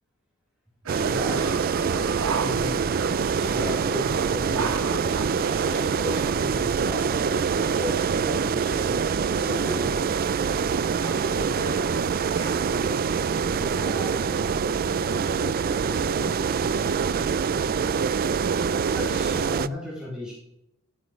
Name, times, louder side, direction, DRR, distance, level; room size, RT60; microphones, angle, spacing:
voice 1, 0.9-1.6 2.2-5.2 5.7-10.0 17.9-18.0 18.9-20.3, left 1 dB, 5° right, -8 dB, 3.8 m, -35 dB
sound 1, 0.9-19.7, right 6 dB, 45° right, 0.4 m, -25 dB
sound 2, 0.9-6.3, right 5 dB, 75° right, 0.9 m, -34 dB
sound 3, 6.8-12.9, equal, 55° left, 5.2 m, -53 dB
voice 2, 10.8-11.8 12.3-13.0 13.6-14.8 15.0-16.8, left 1 dB, 20° left, -1 dB, 3.7 m, -40 dB
16.0 x 8.5 x 3.2 m, 0.78 s
head